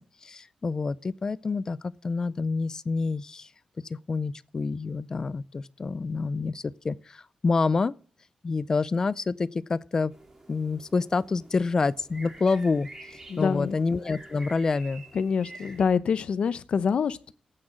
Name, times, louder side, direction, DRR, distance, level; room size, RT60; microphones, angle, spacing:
voice 1, 0.2-3.5 3.9-7.9 8.4-10.1 10.5-12.9 13.4-15.0, left 4 dB, 30° left, 0.5 m, -27 dB
sound 1, 10.1-15.8, right 2 dB, 20° right, 2.5 m, -48 dB
voice 2, 13.3-13.7 15.1-17.3, left 6 dB, 55° left, 0.7 m, -26 dB
14.0 x 8.8 x 6.2 m
wide cardioid pair, 180°, 2 cm